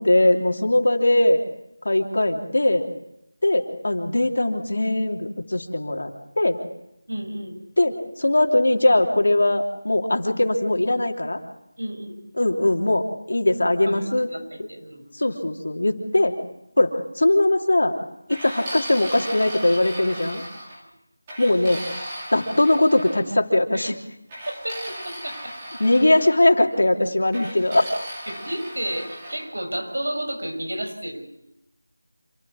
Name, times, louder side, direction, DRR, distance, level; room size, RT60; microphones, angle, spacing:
voice 1, 0.0-1.4 1.8-2.8 3.4-6.6 7.8-11.4 12.4-14.3 14.6-14.7 15.1-16.4 16.8-17.9 18.3-20.4 21.4-21.8 22.3-24.0 25.8-27.9, left 1 dB, 60° left, 3 dB, 3.1 m, -20 dB
voice 2, 7.1-7.6 11.8-12.1 13.9-15.1 23.7-23.9 24.6-24.8 25.0-25.5 28.3-31.2, right 1 dB, 80° right, 4 dB, 6.6 m, -31 dB
sound 1, 18.3-20.8 21.3-23.2 24.3-26.3 27.3-29.5, equal, 10° right, 2.8 m, -36 dB
27.0 x 12.5 x 9.8 m, 0.83 s
figure-of-eight pair, 180°, 0 cm